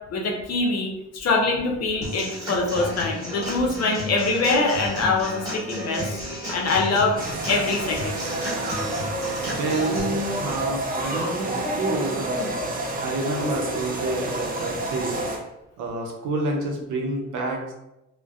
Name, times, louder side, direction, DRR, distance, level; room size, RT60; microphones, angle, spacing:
voice 1, 0.1-6.2 6.5-7.1 7.5-8.1, left 3 dB, 55° left, 0 dB, 0.7 m, -24 dB
Human voice / Acoustic guitar / Drum, 2.0-10.0, equal, 10° right, 1.4 m, -33 dB
sound 1, 7.2-15.4, right 1 dB, 30° right, 0.5 m, -29 dB
voice 2, 9.5-15.2 15.8-17.7, right 2 dB, 75° right, 1 dB, 0.7 m, -29 dB
2.4 x 2.2 x 2.3 m, 0.90 s
cardioid pair, 90°, 30 cm